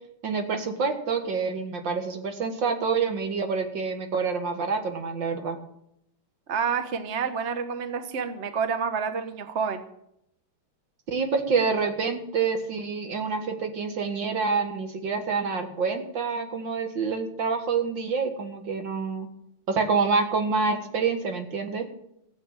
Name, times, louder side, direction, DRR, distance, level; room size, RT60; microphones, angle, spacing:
voice 1, 0.2-5.6 11.1-19.3 19.7-21.9, right 5 dB, 65° right, 6 dB, 2.3 m, -27 dB
voice 2, 6.5-9.8, right 6 dB, 45° right, 9 dB, 1.1 m, -28 dB
15.5 x 7.6 x 8.9 m, 0.76 s
omnidirectional pair, 2.2 m